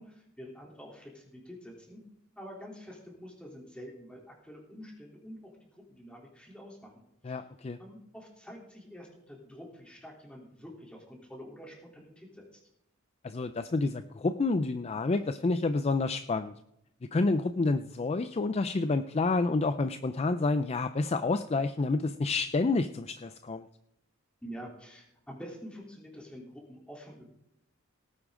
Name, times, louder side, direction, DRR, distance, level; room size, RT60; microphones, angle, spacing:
voice 1, 0.0-2.0 2.4-7.4 7.8-12.6 24.4-27.3, equal, 5° left, -2 dB, 3.3 m, -47 dB
voice 2, 7.2-7.8 13.2-16.5 17.1-23.6, left 3 dB, 30° left, 10 dB, 0.4 m, -29 dB
18.0 x 9.6 x 3.8 m, 0.78 s
head